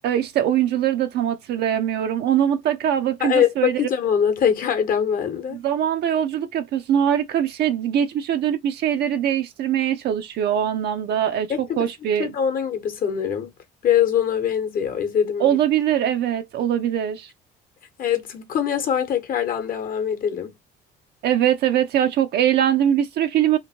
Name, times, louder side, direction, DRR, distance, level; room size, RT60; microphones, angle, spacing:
voice 1, 0.0-3.8 5.5-12.3 15.4-17.3 21.2-23.6, right 10 dB, 65° right, 0.5 m, -22 dB
voice 2, 3.2-5.6 11.5-11.8 12.2-13.5 13.8-15.6 18.0-20.5, left 8 dB, 50° left, 0.9 m, -23 dB
2.9 x 2.5 x 2.7 m
cardioid pair, 120°, 19 cm